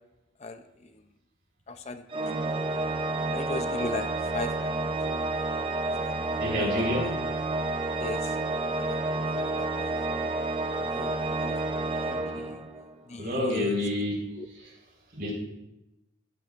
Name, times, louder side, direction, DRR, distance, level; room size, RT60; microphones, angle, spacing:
voice 1, 0.4-0.9 1.7-2.5 3.3-4.1 4.3-4.7 5.6-7.1 8.0-8.4 8.7-9.0 9.3-10.1 10.7-11.7 12.1-12.6 13.1-13.8 14.4-14.5, left 2 dB, 35° left, 9 dB, 0.5 m, -38 dB
Organ, 2.1-13.0, right 2 dB, 25° right, 0.6 m, -30 dB
voice 2, 6.4-7.1 13.2-14.2 14.5-14.7 15.1-15.3, left 1 dB, 50° right, -3 dB, 4.4 m, -28 dB
15.0 x 10.5 x 2.5 m, 0.93 s
head